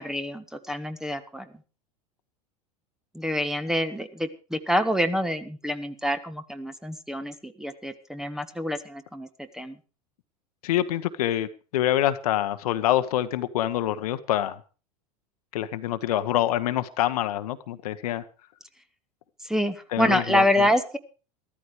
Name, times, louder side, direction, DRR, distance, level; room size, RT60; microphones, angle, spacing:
voice 1, 0.0-1.5 3.1-9.8 19.4-21.0, equal, ahead, 11 dB, 1.4 m, -27 dB
voice 2, 10.6-14.6 15.5-18.2 19.9-20.7, left 12 dB, 65° left, 11 dB, 1.2 m, -26 dB
14.0 x 13.5 x 4.9 m, 0.35 s
hypercardioid pair, 90°, 20 cm